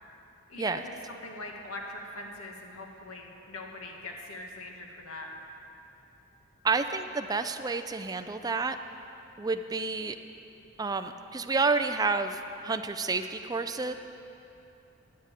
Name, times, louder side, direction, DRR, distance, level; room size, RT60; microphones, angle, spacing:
voice 1, 0.5-5.3, left 2 dB, 90° left, 1 dB, 1.6 m, -42 dB
voice 2, 6.6-8.8 9.4-10.2 10.8-13.9, right 4 dB, 20° right, 7 dB, 0.4 m, -29 dB
10.5 x 8.9 x 8.2 m, 2.8 s
head